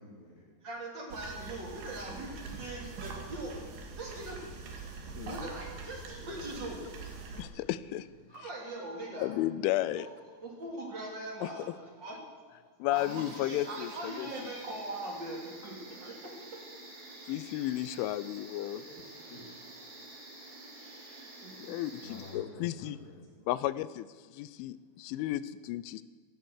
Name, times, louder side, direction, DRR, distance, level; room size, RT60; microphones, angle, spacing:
voice 1, 0.0-0.5 1.9-2.2 18.9-19.4 22.0-23.5, left 2 dB, 55° left, -4 dB, 5.7 m, -50 dB
voice 2, 0.6-3.6 3.9-4.4 5.3-6.8 8.3-9.3 10.0-10.1 10.4-15.7 16.0-16.3 21.4-21.8, right 2 dB, 30° right, -1 dB, 2.8 m, -41 dB
sound 1, 1.1-7.4, right 4 dB, 65° right, 4.0 m, -44 dB
voice 3, 7.4-8.1 8.4-8.5 9.2-10.1 11.4-11.5 12.8-14.5 17.3-18.8 21.6-23.0 23.5-26.0, left 14 dB, 85° left, 16 dB, 3.0 m, -33 dB
sound 2, 12.9-22.3, right 2 dB, 45° right, 5.5 m, -49 dB
15.5 x 11.0 x 8.1 m, 1.5 s
omnidirectional pair, 5.5 m